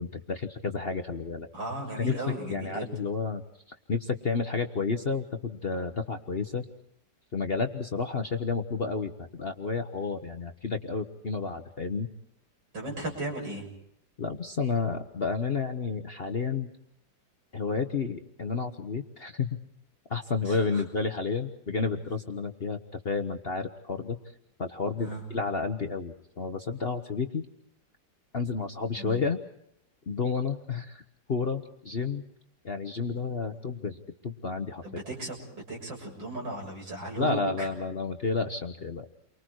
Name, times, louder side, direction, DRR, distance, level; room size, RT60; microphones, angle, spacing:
voice 1, 0.0-1.5 2.0-2.2 2.5-3.4 3.9-6.6 7.3-12.1 14.2-16.7 17.5-19.5 20.1-22.8 23.0-24.2 24.6-27.4 28.3-29.4 30.1-31.0 31.3-32.2 32.6-34.8 37.2-39.1, left 4 dB, 40° left, 6 dB, 1.1 m, -31 dB
voice 2, 1.5-2.9 12.7-13.7 20.4-20.8 25.0-25.2 29.0-29.2 34.8-37.7, right 2 dB, 85° right, 0 dB, 7.5 m, -36 dB
30.0 x 24.0 x 4.7 m, 0.73 s
omnidirectional pair, 2.0 m